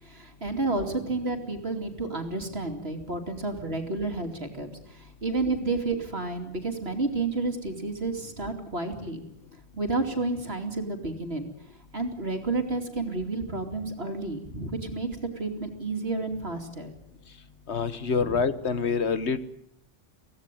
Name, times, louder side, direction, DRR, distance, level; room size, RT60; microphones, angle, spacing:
voice 1, 0.0-9.2 9.7-11.5 11.9-15.1 15.4-16.9 18.2-18.4, right 3 dB, 55° right, 5 dB, 3.0 m, -31 dB
voice 2, 17.7-19.5, left 5 dB, 65° left, 13 dB, 1.4 m, -26 dB
24.5 x 17.0 x 9.2 m, 0.75 s
omnidirectional pair, 1.2 m